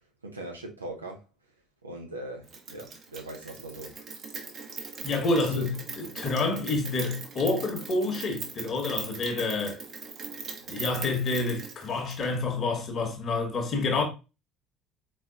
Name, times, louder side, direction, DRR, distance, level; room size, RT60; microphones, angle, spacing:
voice 1, 0.2-1.2 1.8-3.9 5.5-5.7, right 1 dB, 85° right, 0.7 m, -40 dB
Rain, 2.5-12.4, right 5 dB, 45° right, 1.0 m, -40 dB
voice 2, 5.0-9.8 10.7-14.0, left 3 dB, 40° left, 1.2 m, -28 dB
4.3 x 4.1 x 2.3 m
figure-of-eight pair, 55°, 0 cm